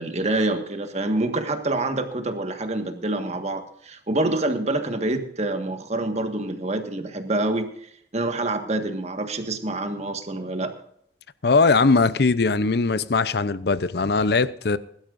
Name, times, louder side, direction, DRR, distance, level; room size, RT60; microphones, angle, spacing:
voice 1, 0.0-10.7, right 2 dB, 40° right, 1.6 m, -26 dB
voice 2, 11.4-14.8, left 4 dB, 65° left, 0.7 m, -20 dB
21.0 x 12.0 x 2.6 m
head